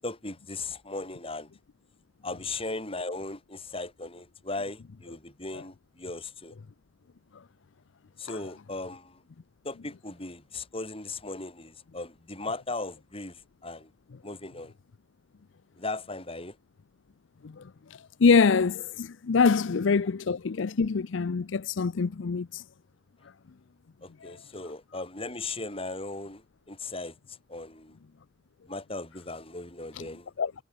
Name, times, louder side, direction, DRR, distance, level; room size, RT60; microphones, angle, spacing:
voice 1, 0.0-1.5 2.2-6.5 8.2-9.2 9.6-13.9 14.2-14.7 15.8-16.6 24.0-28.0 28.7-30.3, left 2 dB, 30° left, 7.1 m, -37 dB
voice 2, 18.2-22.6 24.2-24.3 30.4-30.5, left 5 dB, 75° left, 0.5 m, -24 dB
head